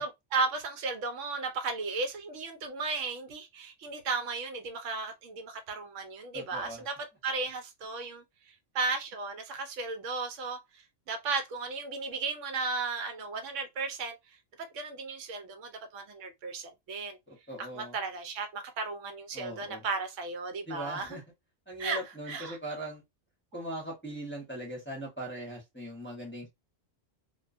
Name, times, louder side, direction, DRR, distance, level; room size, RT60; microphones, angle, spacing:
voice 1, 0.0-6.9 7.2-8.2 8.7-14.2 14.6-17.2 17.6-21.2 21.8-22.0 22.3-22.6, right 4 dB, 75° right, 0.9 m, -35 dB
voice 2, 6.3-6.8 17.3-17.9 19.3-19.8 20.7-21.2 21.7-23.0 23.5-26.5, right 1 dB, 10° left, 0.7 m, -40 dB
2.3 x 2.3 x 2.4 m
omnidirectional pair, 1.3 m